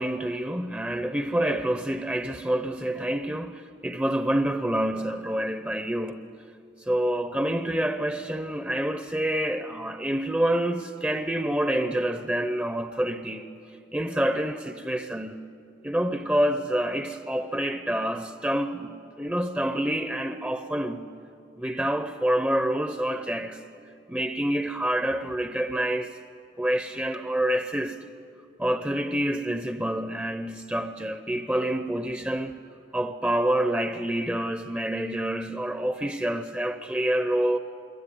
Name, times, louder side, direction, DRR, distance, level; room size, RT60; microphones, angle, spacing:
voice 1, 0.0-6.3 6.8-13.5 13.9-15.4 15.8-21.1 21.6-23.6 24.1-26.2 26.6-28.0 28.6-32.5 32.9-37.6, right 1 dB, 10° right, 0.7 m, -27 dB
26.5 x 22.5 x 9.8 m
head